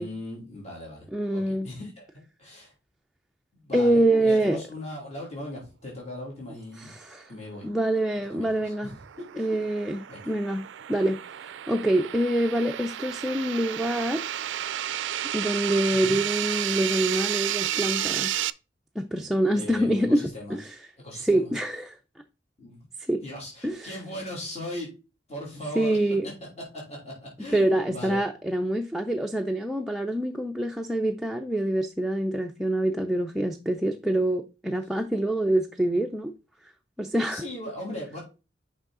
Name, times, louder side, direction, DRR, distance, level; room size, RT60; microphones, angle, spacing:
voice 1, 0.0-1.1 1.3-2.7 3.5-6.9 7.3-7.7 8.3-8.9 9.3-9.5 10.1-10.3 15.9-16.2 19.5-20.6 21.0-21.5 22.6-22.8 23.2-24.9 25.3-26.2 26.7-28.2 37.3-38.2, left 1 dB, 35° left, 2.9 m, -38 dB
voice 2, 1.1-1.7 3.7-4.6 6.8-7.3 7.6-8.9 9.4-14.2 15.3-18.4 19.0-20.8 21.1-22.0 23.1-23.2 23.6-23.9 25.8-26.2 27.5-36.3 37.0-37.4, right 1 dB, ahead, 0.4 m, -26 dB
sound 1, 8.1-18.5, right 12 dB, 75° right, 0.4 m, -32 dB
6.2 x 5.5 x 3.8 m
head